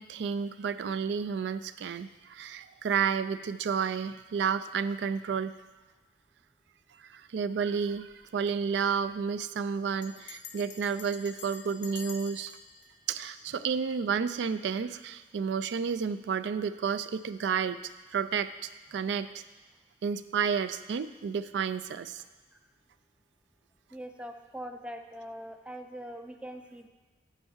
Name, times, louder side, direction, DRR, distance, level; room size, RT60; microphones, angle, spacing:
voice 1, 0.0-5.5 7.1-12.5 13.1-19.3 20.0-22.2, right 6 dB, 80° right, 13 dB, 0.3 m, -31 dB
Bell, 8.1-8.3 8.5-8.6 8.8-9.2 10.0-14.1, left 7 dB, 85° left, 0.7 m, -49 dB
voice 2, 23.9-26.9, equal, 5° right, 5 dB, 0.4 m, -42 dB
8.1 x 4.5 x 7.2 m, 1.3 s
head